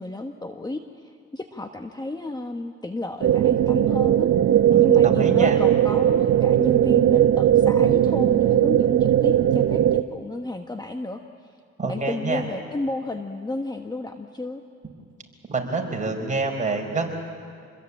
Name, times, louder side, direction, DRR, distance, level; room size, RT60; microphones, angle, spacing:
voice 1, 0.0-4.3 4.8-11.2 11.8-14.6, left 2 dB, 15° left, 5 dB, 1.2 m, -32 dB
sound 1, 3.2-10.0, right 11 dB, 60° right, 0.9 m, -18 dB
voice 2, 4.7-5.6 11.8-12.4 15.5-17.1, right 3 dB, 25° right, 1 dB, 5.0 m, -27 dB
27.5 x 21.0 x 8.6 m, 2.4 s
cardioid pair, 90°, 30 cm